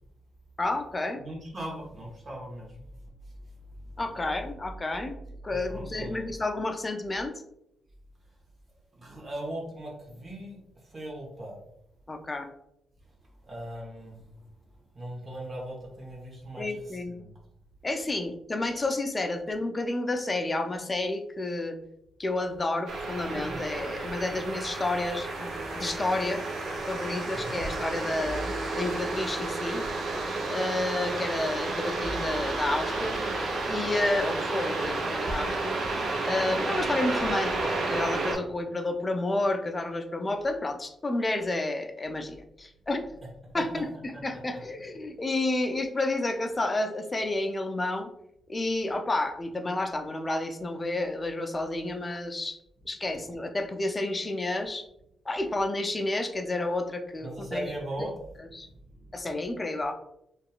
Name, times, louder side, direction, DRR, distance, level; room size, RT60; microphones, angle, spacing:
voice 1, 0.6-1.2 4.0-5.1 5.4-7.3 12.1-12.5 16.6-17.2 17.8-21.8 22.2-26.4 26.9-28.4 28.8-29.8 30.5-33.2 33.6-35.8 36.2-43.1 43.5-48.1 48.5-52.6 52.9-54.8 55.3-57.6 58.0-58.1 58.5-58.7 59.1-59.9, left 2 dB, 30° left, 6 dB, 0.4 m, -30 dB
voice 2, 1.2-2.8 3.8-4.0 5.5-6.3 8.9-10.6 10.8-11.6 13.5-14.2 14.9-17.3 27.3-27.6 43.5-43.6 44.1-44.2 57.2-59.3, right 1 dB, 40° right, -1 dB, 1.0 m, -39 dB
sound 1, 22.9-38.3, right 3 dB, 65° right, 0.5 m, -31 dB
sound 2, 25.5-35.5, equal, 20° right, 1.1 m, -43 dB
2.7 x 2.3 x 2.3 m, 0.79 s
supercardioid pair, 50°, 0 cm